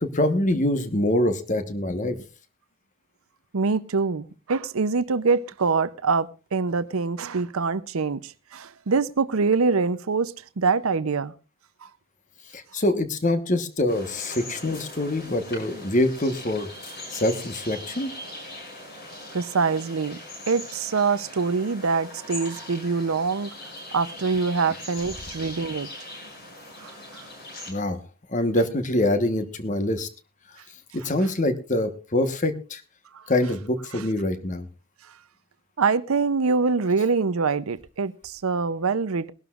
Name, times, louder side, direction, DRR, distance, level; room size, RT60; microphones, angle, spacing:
voice 1, 0.0-2.2 12.5-16.7 17.1-18.1 27.7-28.0 28.3-30.1 30.9-32.8 33.3-34.7, left 1 dB, 35° left, 1.2 m, -25 dB
voice 2, 3.5-11.3 11.8-11.9 19.3-20.2 20.5-23.5 23.9-25.9 26.8-27.2 35.8-39.3, right 4 dB, 85° right, 0.6 m, -24 dB
sound 1, 13.9-27.7, left 1 dB, 50° left, 6.4 m, -40 dB
22.0 x 12.0 x 2.4 m
head